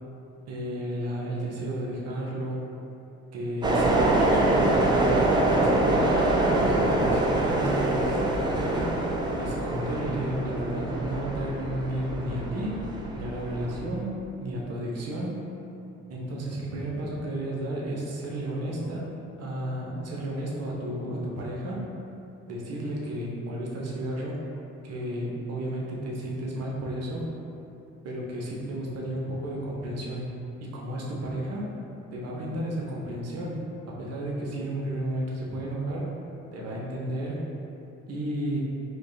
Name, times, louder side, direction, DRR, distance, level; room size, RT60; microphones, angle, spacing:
voice 1, 0.5-2.6 3.3-6.1 6.5-9.0 9.4-12.8 13.1-14.1 14.4-15.3 16.1-19.1 19.4-21.8 22.5-24.4 24.8-27.3 28.0-30.2 30.6-31.7 32.1-33.6 33.9-36.1 36.5-37.5 38.1-38.6, right 1 dB, 40° right, -3 dB, 0.8 m, -32 dB
sound 1, 3.6-13.8, right 2 dB, 15° right, 0.3 m, -25 dB
4.6 x 2.2 x 2.7 m, 2.8 s
figure-of-eight pair, 40°, 38 cm